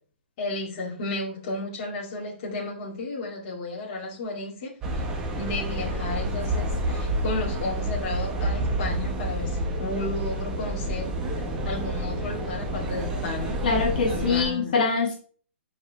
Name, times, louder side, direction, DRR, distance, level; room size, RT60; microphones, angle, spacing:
voice 1, 0.4-4.7 5.4-13.6 14.1-14.7, left 2 dB, 25° left, -4 dB, 2.3 m, -33 dB
sound 1, 4.8-14.4, right 1 dB, 10° right, 0.8 m, -29 dB
voice 2, 13.6-15.1, left 4 dB, 45° left, -1 dB, 2.1 m, -24 dB
9.6 x 4.9 x 3.5 m, 0.42 s
hypercardioid pair, 175°, 7 cm